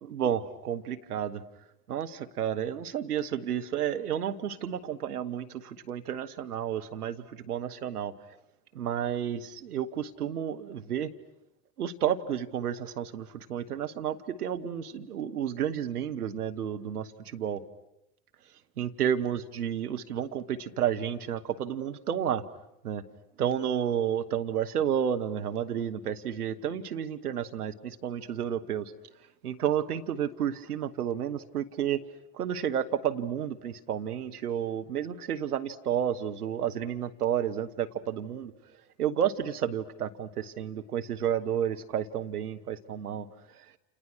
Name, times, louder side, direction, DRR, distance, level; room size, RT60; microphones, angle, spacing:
voice 1, 0.1-1.4 1.9-8.1 8.7-11.1 11.8-17.6 18.8-22.4 22.8-23.0 23.4-28.9 29.4-32.0 32.3-38.5 39.0-43.3, right 9 dB, 90° right, 9 dB, 1.4 m, -31 dB
29.0 x 28.5 x 6.3 m, 0.86 s
hypercardioid pair, 70°, 44 cm